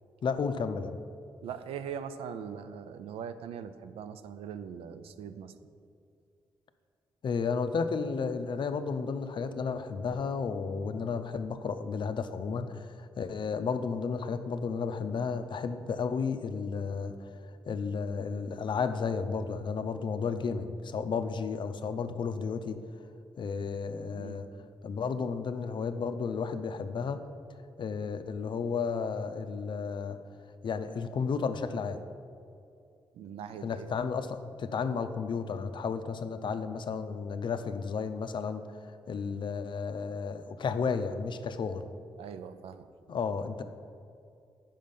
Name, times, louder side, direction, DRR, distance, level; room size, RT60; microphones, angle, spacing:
voice 1, 0.2-1.0 7.2-17.3 17.7-22.8 23.4-24.5 24.8-27.2 27.8-30.2 30.6-32.0 33.6-38.6 39.1-41.9 43.1-43.6, left 5 dB, 55° left, 10 dB, 0.5 m, -33 dB
voice 2, 1.4-5.5 24.1-24.4 33.2-33.9 42.2-42.9, right 8 dB, 80° right, 11 dB, 0.4 m, -41 dB
5.3 x 5.1 x 5.4 m, 2.5 s
supercardioid pair, 45°, 10 cm